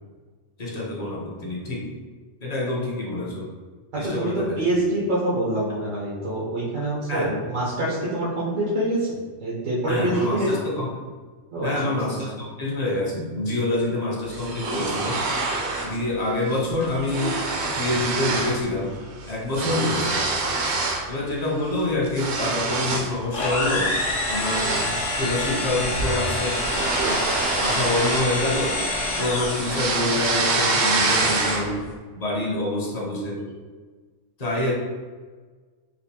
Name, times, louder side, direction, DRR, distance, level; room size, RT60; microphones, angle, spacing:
voice 1, 0.6-1.9 2.4-3.5 4.0-4.6 7.1-7.4 9.9-10.9 11.6-15.2 15.8-17.4 17.8-18.9 19.3-20.2 21.1-23.9 24.3-24.8 25.1-26.6 27.0-28.8 29.2-31.9 32.2-33.4 34.4-34.7, left 2 dB, 40° left, -3 dB, 0.6 m, -26 dB
voice 2, 3.9-9.1 9.4-10.5 11.5-11.7, right 1 dB, 85° right, -7 dB, 1.2 m, -25 dB
sound 1, 14.3-16.0 16.3-16.6 16.8-18.6 18.9-21.1 21.5-23.2 23.6-23.8 24.3-28.8 29.1-31.9, right 3 dB, 70° right, 0.8 m, -26 dB
sound 2, 23.3-30.0, left 1 dB, 80° left, 1.3 m, -27 dB
4.1 x 2.4 x 2.7 m, 1.4 s
omnidirectional pair, 1.3 m